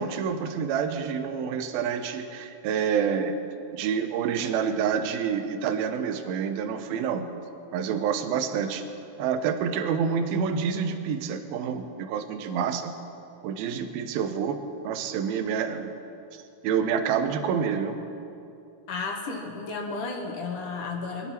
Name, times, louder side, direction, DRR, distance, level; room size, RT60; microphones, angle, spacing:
voice 1, 0.0-3.4 3.7-7.3 7.7-8.8 9.2-12.9 13.4-14.6 14.8-15.9 16.3-18.0, right 7 dB, 70° right, 7 dB, 2.5 m, -28 dB
voice 2, 18.9-21.3, left 4 dB, 60° left, 1 dB, 2.7 m, -33 dB
24.0 x 12.0 x 4.4 m, 2.7 s
omnidirectional pair, 4.8 m